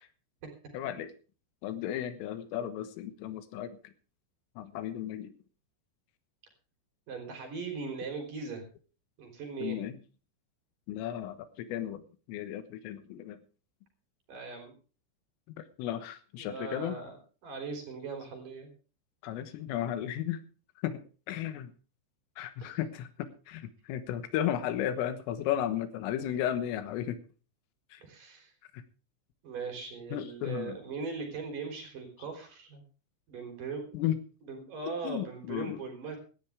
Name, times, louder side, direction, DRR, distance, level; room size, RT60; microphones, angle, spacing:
voice 1, 0.7-1.1 1.6-3.8 4.6-5.3 9.6-10.0 10.9-12.0 12.3-13.4 15.6-17.0 19.2-20.4 20.8-21.7 22.4-27.2 27.9-28.0 28.7-28.8 30.1-30.8 33.9-34.2 35.0-35.8, left 11 dB, 85° left, 11 dB, 3.9 m, -34 dB
voice 2, 7.1-8.6 9.2-9.8 14.3-14.7 16.4-17.2 17.4-18.7 22.6-22.8 28.0-28.5 29.4-32.8 33.3-34.0 34.4-36.2, right 4 dB, 45° right, 4 dB, 4.9 m, -39 dB
18.0 x 12.5 x 3.5 m, 0.36 s
omnidirectional pair, 5.8 m